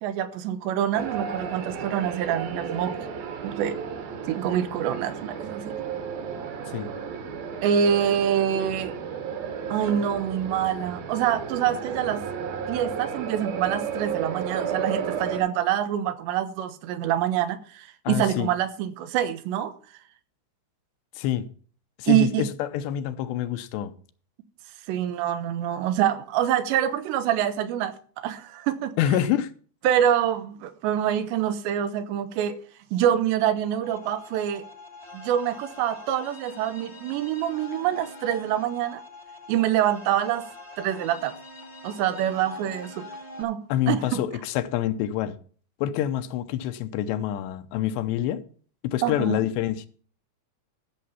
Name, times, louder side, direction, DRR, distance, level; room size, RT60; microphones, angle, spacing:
voice 1, 0.0-3.0 3.4-3.8 4.3-5.7 7.6-9.0 9.7-12.2 12.7-19.7 22.1-22.5 24.9-27.9 28.2-28.9 29.8-32.6 32.9-34.6 35.1-39.0 39.5-40.5 40.8-41.4 41.8-43.1 43.4-43.6 43.9-44.0 49.0-49.4, right 10 dB, 90° right, 3.3 m, -25 dB
sound 1, 0.9-15.4, right 6 dB, 65° right, 3.3 m, -33 dB
voice 2, 18.1-18.5 21.2-21.5 22.0-23.9 29.0-29.5 43.7-45.4 45.8-48.4 48.8-49.9, left 11 dB, 85° left, 3.0 m, -26 dB
sound 2, 33.8-43.4, left 2 dB, 30° left, 1.1 m, -44 dB
14.0 x 6.8 x 5.7 m
omnidirectional pair, 4.9 m